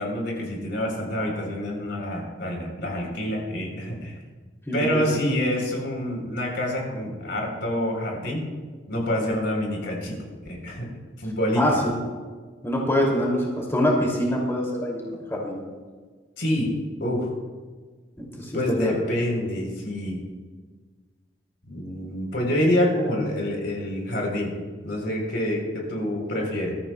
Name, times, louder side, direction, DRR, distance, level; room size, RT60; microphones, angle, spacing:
voice 1, 0.0-4.2 4.7-8.5 8.9-10.2 10.5-10.9 11.2-11.6 16.4-16.7 17.0-17.3 18.5-20.2 21.6-24.5 24.8-26.8, left 1 dB, 75° left, 0 dB, 3.8 m, -27 dB
voice 2, 4.7-5.2 11.6-12.0 12.6-15.6 18.2-18.9, equal, 15° left, -3 dB, 2.6 m, -25 dB
21.5 x 13.5 x 2.3 m, 1.5 s
head